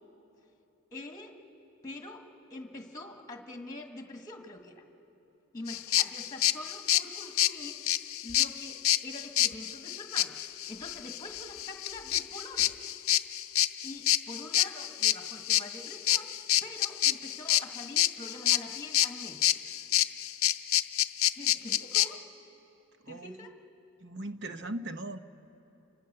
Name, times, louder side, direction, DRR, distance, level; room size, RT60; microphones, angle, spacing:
voice 1, 0.9-1.4 1.8-4.8 5.5-7.8 8.2-12.7 13.8-16.3 16.6-19.4 21.3-22.2 23.1-23.6, left 2 dB, 15° left, 4 dB, 1.7 m, -45 dB
sound 1, 5.7-22.1, left 13 dB, 70° left, 0.6 m, -28 dB
voice 2, 24.0-25.2, right 1 dB, 50° right, 9 dB, 0.9 m, -38 dB
29.5 x 25.0 x 6.8 m, 3.0 s
head